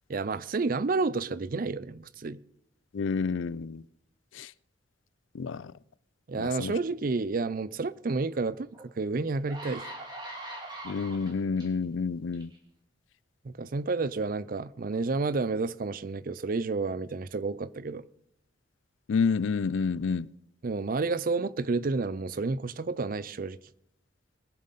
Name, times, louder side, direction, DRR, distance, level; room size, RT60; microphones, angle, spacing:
voice 1, 0.1-2.4 6.3-9.8 13.4-18.0 20.6-23.6, right 3 dB, 45° right, 0.5 m, -30 dB
voice 2, 2.9-3.8 4.3-4.5 5.3-5.7 6.4-6.7 10.8-12.5 19.1-20.3, left 5 dB, 80° left, 0.4 m, -29 dB
sound 1, 8.7-8.8 9.3-11.7 12.3-12.6, right 1 dB, 25° right, 2.5 m, -41 dB
21.5 x 7.6 x 4.1 m
head